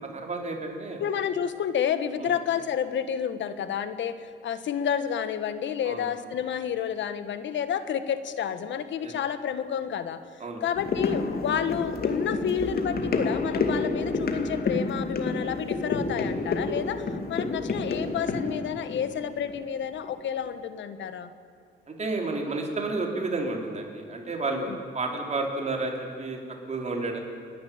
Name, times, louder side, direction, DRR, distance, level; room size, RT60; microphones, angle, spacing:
voice 1, 0.1-1.0 2.2-2.3 5.8-6.1 9.0-9.1 10.4-10.6 21.9-26.4 26.7-27.2, right 3 dB, 35° right, 1 dB, 4.5 m, -31 dB
voice 2, 1.0-10.2 10.6-21.3 24.5-24.8, left 8 dB, 70° left, 11 dB, 1.5 m, -30 dB
sound 1, 10.8-20.1 20.5-20.6, left 3 dB, 50° left, 2.4 m, -29 dB
29.0 x 11.0 x 8.9 m, 2.4 s
cardioid pair, 90°, 20 cm